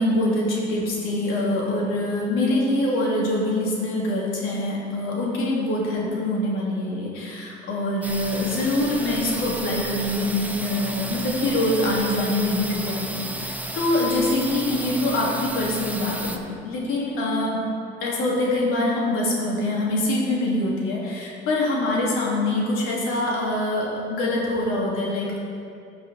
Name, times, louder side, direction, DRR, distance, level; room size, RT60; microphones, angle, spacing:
voice 1, 0.0-17.6 18.0-25.4, left 1 dB, 85° left, -4 dB, 2.6 m, -24 dB
sound 1, 8.0-16.4, right 1 dB, 5° right, 0.9 m, -33 dB
16.0 x 5.4 x 4.2 m, 2.4 s
supercardioid pair, 80°, 21 cm